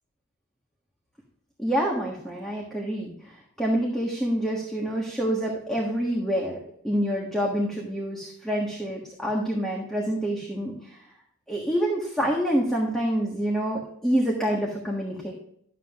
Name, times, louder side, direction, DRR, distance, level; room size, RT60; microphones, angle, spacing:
voice 1, 1.6-6.6 6.8-11.0 11.5-15.3, equal, ahead, -2 dB, 1.4 m, -27 dB
11.5 x 7.6 x 2.5 m, 0.71 s
head